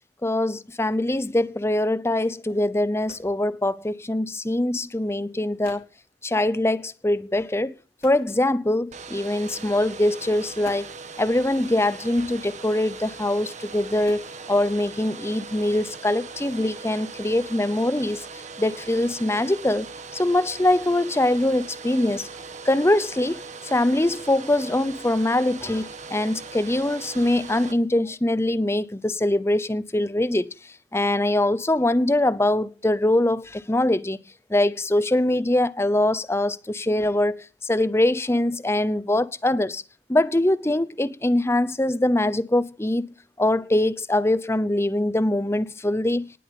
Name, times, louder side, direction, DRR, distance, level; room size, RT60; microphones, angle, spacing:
voice 1, 0.2-5.8 6.2-7.7 8.0-10.9 11.2-18.2 18.6-19.9 20.1-22.3 22.7-23.4 23.7-30.5 30.9-34.2 34.5-37.4 37.6-39.8 40.1-46.3, left 1 dB, 15° left, 0.7 m, -23 dB
sound 1, 2.8-3.5 4.4-4.7 5.3-5.4 5.6-6.0 8.0-8.9 9.8-9.9 10.4-11.1 12.4-12.9 13.7-14.7, left 3 dB, 50° left, 3.8 m, -48 dB
Domestic sounds home sounds, 8.9-27.7, right 4 dB, 40° right, 1.6 m, -40 dB
19.0 x 7.8 x 7.0 m
head